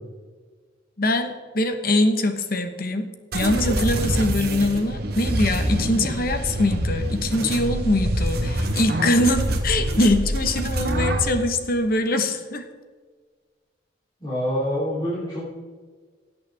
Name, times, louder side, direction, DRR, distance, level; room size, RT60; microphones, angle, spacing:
voice 1, 1.0-3.1 3.3-12.6, left 1 dB, 50° left, 8 dB, 1.1 m, -23 dB
sound 1, 3.3-11.3, right 1 dB, 55° right, 1.5 m, -25 dB
voice 2, 14.2-15.5, equal, 20° left, -9 dB, 3.3 m, -26 dB
17.0 x 8.7 x 3.5 m, 1.5 s
head